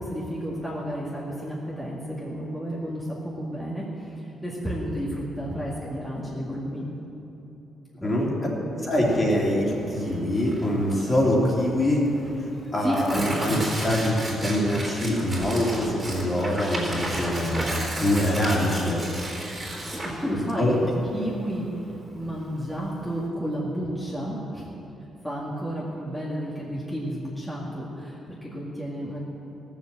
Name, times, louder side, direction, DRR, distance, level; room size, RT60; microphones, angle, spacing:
voice 1, 0.0-6.9 8.0-8.9 12.8-13.7 19.8-21.7 22.1-24.7 25.2-29.2, equal, 5° left, -7 dB, 2.1 m, -32 dB
voice 2, 8.0-8.3 8.9-12.0 12.7-13.6 13.8-19.0 20.2-20.8, left 1 dB, 25° left, -3 dB, 2.9 m, -24 dB
Tearing, 9.0-23.3, right 1 dB, 20° right, 3.9 m, -34 dB
16.5 x 7.3 x 7.5 m, 2.9 s
cardioid pair, 125°, 0 cm